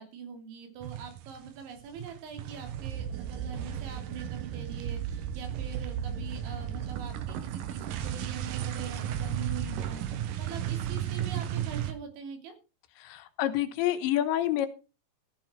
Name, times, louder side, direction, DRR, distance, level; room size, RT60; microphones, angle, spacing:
voice 1, 0.0-12.5, right 7 dB, 85° right, 5 dB, 5.2 m, -43 dB
sound 1, 0.8-1.6 1.8-11.9, right 9 dB, 65° right, 2.2 m, -34 dB
voice 2, 13.0-14.7, left 12 dB, 85° left, 10 dB, 3.4 m, -28 dB
15.0 x 10.5 x 4.5 m, 0.32 s
omnidirectional pair, 5.2 m